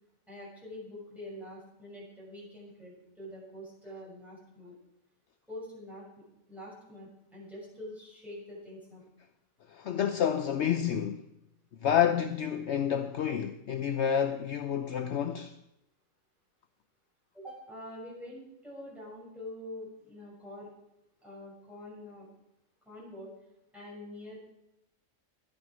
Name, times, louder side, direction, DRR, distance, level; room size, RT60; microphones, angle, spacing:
voice 1, 0.3-4.7 5.5-6.0 6.5-9.0 17.3-20.7 21.2-22.3 22.9-23.3 23.7-24.4, left 1 dB, ahead, 6.9 m, -45 dB
voice 2, 9.7-11.2 11.8-15.6, left 9 dB, 65° left, 0.9 m, -29 dB
13.5 x 11.0 x 6.3 m
omnidirectional pair, 1.4 m